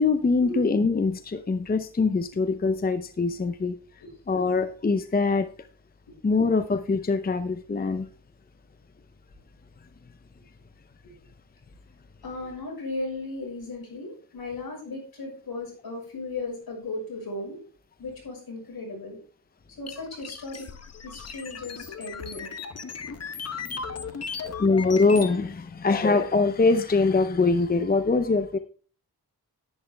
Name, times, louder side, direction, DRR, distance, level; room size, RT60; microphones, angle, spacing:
voice 1, 0.0-3.8 4.3-5.5 6.2-8.1 23.7-23.8 24.6-28.6, left 4 dB, 25° left, 10 dB, 0.6 m, -23 dB
voice 2, 12.2-17.6 18.0-19.2 19.8-20.7 21.0-22.6, left 2 dB, 70° left, -1 dB, 6.1 m, -36 dB
sound 1, 19.9-25.3, left 5 dB, 40° left, 1.0 m, -37 dB
10.5 x 9.9 x 3.4 m, 0.39 s
wide cardioid pair, 115°, 38 cm